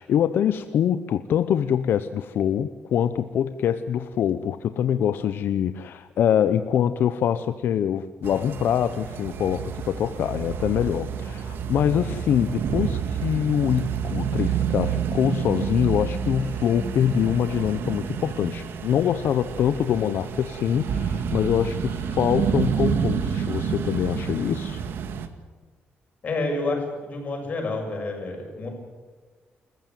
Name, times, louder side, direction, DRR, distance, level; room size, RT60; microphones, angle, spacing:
voice 1, 0.0-24.8, left 9 dB, 75° left, 11 dB, 0.8 m, -24 dB
sound 1, 8.2-25.3, right 7 dB, 80° right, 1.9 m, -29 dB
voice 2, 26.2-28.7, left 2 dB, 40° left, 2 dB, 6.7 m, -29 dB
28.0 x 15.0 x 9.5 m, 1.4 s
wide cardioid pair, 155°, 4 cm